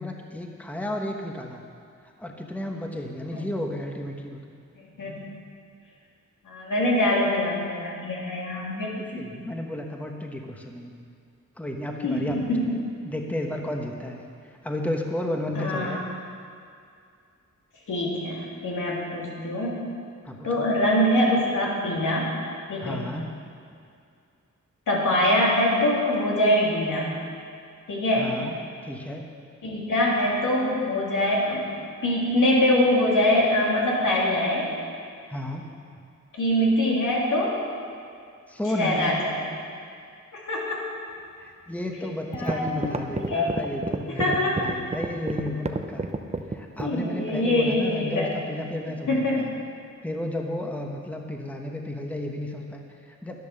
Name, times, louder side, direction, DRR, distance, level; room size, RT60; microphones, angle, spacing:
voice 1, 0.0-1.6 2.2-4.4 9.1-10.9 11.6-12.7 13.0-16.0 20.2-20.7 22.8-23.2 28.2-28.6 28.8-29.3 35.3-35.7 38.5-39.1 41.4-46.1 46.5-49.5 50.0-53.4, left 1 dB, 5° left, 1 dB, 1.2 m, -33 dB
voice 2, 6.4-9.2 12.0-12.7 15.5-16.0 17.9-19.8 20.4-22.3 22.7-23.0 24.9-27.1 27.9-28.3 29.6-31.7 32.0-34.7 36.3-37.6 38.7-39.4 40.3-40.8 42.0-42.9 43.3-43.6 44.1-44.5 46.8-48.3 49.1-49.5, left 1 dB, 80° left, -4 dB, 3.1 m, -24 dB
sound 1, 41.9-42.0 42.3-47.0, right 3 dB, 20° right, 0.7 m, -29 dB
12.0 x 10.5 x 6.7 m, 2.4 s
wide cardioid pair, 110°, 31 cm